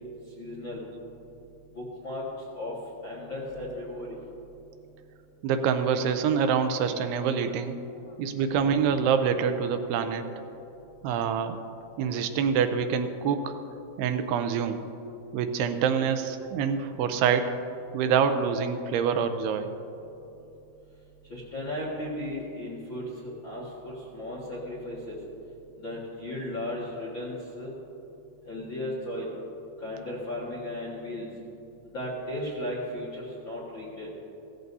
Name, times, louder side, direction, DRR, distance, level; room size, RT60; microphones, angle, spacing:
voice 1, 0.4-0.8 1.7-2.3 2.5-2.8 3.0-4.1 7.9-8.1 21.3-25.2 25.8-27.7 28.4-29.3 29.8-31.3 31.9-34.1, left 1 dB, 50° left, -6 dB, 1.4 m, -35 dB
voice 2, 5.4-7.8 8.2-10.2 11.0-11.6 12.0-13.6 14.0-14.8 15.3-17.6 17.9-19.7, right 7 dB, 85° right, 8 dB, 2.6 m, -26 dB
16.5 x 14.0 x 2.7 m, 2.9 s
omnidirectional pair, 4.7 m